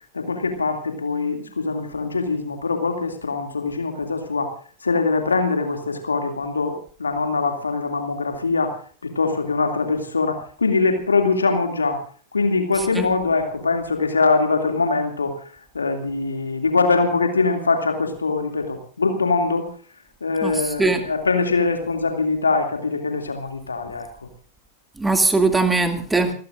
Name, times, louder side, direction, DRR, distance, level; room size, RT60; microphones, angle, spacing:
voice 1, 0.1-4.5 4.8-12.0 12.3-15.3 15.7-19.7 20.2-24.3, left 4 dB, 75° left, 5 dB, 2.5 m, -23 dB
voice 2, 12.7-13.1 20.4-21.0 25.0-26.3, right 3 dB, 10° right, 6 dB, 2.3 m, -20 dB
30.0 x 18.0 x 2.5 m, 0.43 s
figure-of-eight pair, 90°, 0 cm